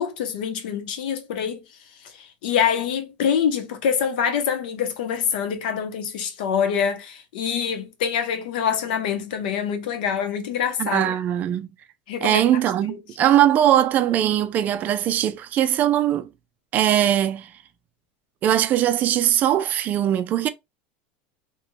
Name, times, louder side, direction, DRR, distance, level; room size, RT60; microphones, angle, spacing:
voice 1, 0.0-1.6 2.0-11.1 12.1-12.4 12.9-13.0, left 7 dB, 85° left, 0.9 m, -25 dB
voice 2, 10.8-11.7 12.2-16.3 16.7-17.5 18.4-20.5, right 11 dB, 35° right, 0.4 m, -20 dB
3.1 x 2.9 x 2.2 m
supercardioid pair, 140°, 5 cm